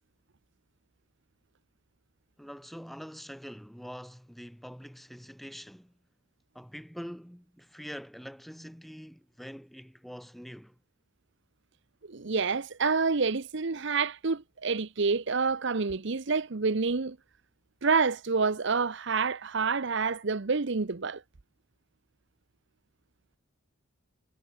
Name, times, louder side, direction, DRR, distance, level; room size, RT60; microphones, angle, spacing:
voice 1, 2.4-6.0 6.5-10.8, equal, ahead, 4.5 m, -44 dB
voice 2, 12.1-17.2 17.8-21.2, right 4 dB, 60° right, 0.8 m, -28 dB
head